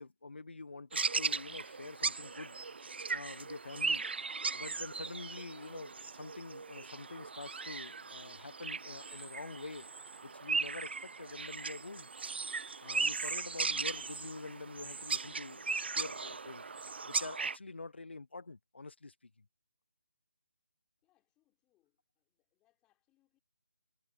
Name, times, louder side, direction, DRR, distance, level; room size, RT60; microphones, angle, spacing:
voice 1, 0.0-2.6 3.1-4.0 4.5-9.9 10.2-12.1 12.8-16.6 17.0-19.4, left 3 dB, 75° left, 1.0 m, -46 dB
sound 1, 0.9-17.6, right 4 dB, 70° right, 0.4 m, -38 dB
voice 2, 21.0-23.4, left 16 dB, 15° left, 4.9 m, -79 dB
figure-of-eight pair, 155°, 6 cm